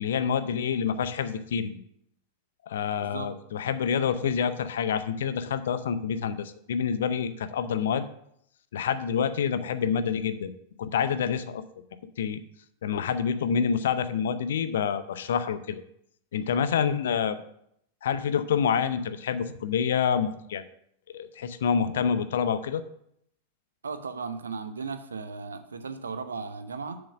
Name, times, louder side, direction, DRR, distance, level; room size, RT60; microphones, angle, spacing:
voice 1, 0.0-1.8 2.7-8.1 8.7-10.5 10.8-11.6 12.2-12.4 12.8-15.8 16.3-17.4 18.0-20.6 21.1-22.8, left 7 dB, 60° left, 12 dB, 0.6 m, -27 dB
voice 2, 2.9-3.3 23.8-27.0, right 5 dB, 70° right, 10 dB, 0.7 m, -36 dB
7.2 x 5.0 x 6.2 m, 0.73 s
figure-of-eight pair, 90°, 0 cm